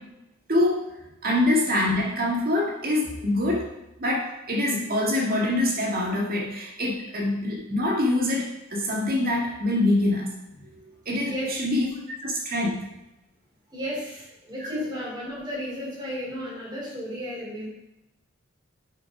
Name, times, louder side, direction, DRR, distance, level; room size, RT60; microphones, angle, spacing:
voice 1, 0.5-0.9 1.2-3.7 4.0-10.4 11.1-11.9 12.2-12.8 14.6-14.9, left 1 dB, 45° right, -2 dB, 1.9 m, -25 dB
voice 2, 11.2-11.5 13.7-17.7, equal, 20° right, -5 dB, 3.5 m, -33 dB
8.2 x 5.9 x 4.9 m, 0.90 s
head